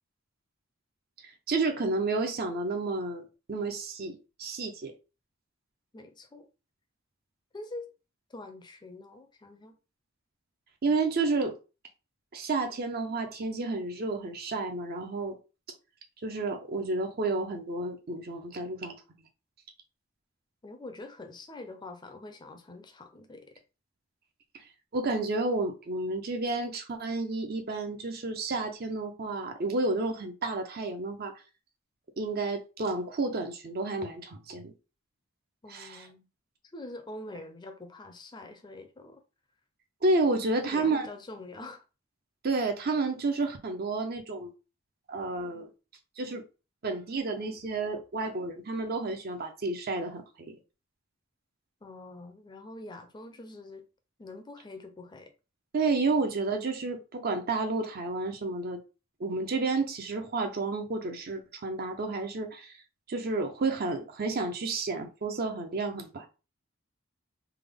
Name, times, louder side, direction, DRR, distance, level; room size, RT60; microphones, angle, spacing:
voice 1, 1.5-4.9 10.8-11.5 12.3-15.4 16.2-19.0 24.9-31.3 32.2-34.7 35.7-36.1 40.0-41.1 42.4-44.5 45.1-45.7 46.2-46.4 46.8-50.2 50.5-50.6 55.7-58.8 59.2-62.7 63.1-66.3, right 3 dB, 50° right, 0.6 m, -31 dB
voice 2, 5.9-6.5 7.5-7.9 8.3-9.8 20.6-23.6 35.6-36.2 36.7-39.2 40.4-41.8 51.8-53.9 54.2-55.3, left 2 dB, 20° left, 0.5 m, -45 dB
3.4 x 2.1 x 3.5 m
head